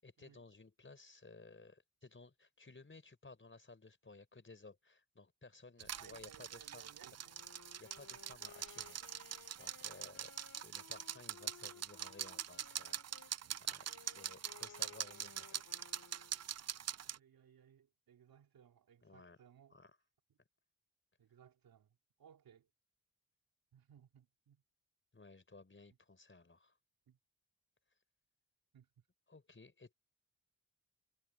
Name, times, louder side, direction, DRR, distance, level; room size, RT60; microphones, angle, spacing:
voice 1, 0.0-6.9 7.8-15.7 19.0-19.4 19.7-20.0 25.1-26.8 29.3-29.9, left 3 dB, 35° left, 4.6 m, -58 dB
En Drink Tab Swirling, 5.8-17.2, right 9 dB, 50° right, 0.6 m, -44 dB
voice 2, 5.9-7.5 16.9-19.8 21.2-22.7 23.7-24.6 27.1-27.2 28.7-29.0, right 8 dB, 85° right, 3.7 m, -63 dB
Wind instrument woodwind instrument, 7.2-13.3 13.8-16.5, left 6 dB, 60° left, 3.1 m, -60 dB
supercardioid pair, 40°, 34 cm